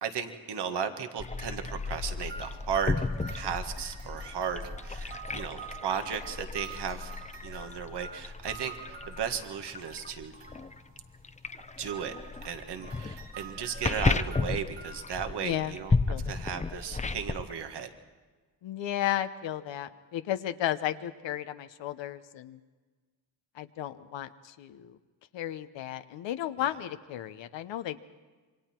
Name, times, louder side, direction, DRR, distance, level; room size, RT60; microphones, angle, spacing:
voice 1, 0.0-7.1 7.4-10.3 11.8-12.1 12.4-15.9 16.3-17.9, right 7 dB, 65° right, 7 dB, 1.8 m, -35 dB
sound 1, 1.2-17.5, left 3 dB, 15° left, 0.7 m, -34 dB
sound 2, 2.2-11.0 11.5-15.1, right 5 dB, 85° right, 3.4 m, -48 dB
voice 2, 15.4-15.7 16.1-16.4 18.6-22.6 23.5-25.0 25.3-28.0, left 11 dB, 85° left, 9 dB, 0.9 m, -34 dB
27.5 x 23.5 x 4.5 m, 1.4 s
cardioid pair, 95°, 43 cm